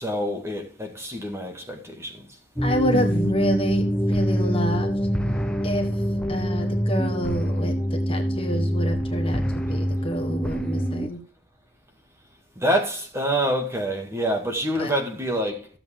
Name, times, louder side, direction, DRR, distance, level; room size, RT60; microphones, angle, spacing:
voice 1, 0.0-2.3 12.6-15.7, equal, 15° right, 2.0 m, -26 dB
voice 2, 2.6-5.0 5.6-5.9 6.3-9.4 9.7-11.2 14.8-14.9, equal, 25° left, 1.5 m, -28 dB
sound 1, 2.6-11.1, equal, 5° left, 0.9 m, -25 dB
15.0 x 7.8 x 3.8 m
head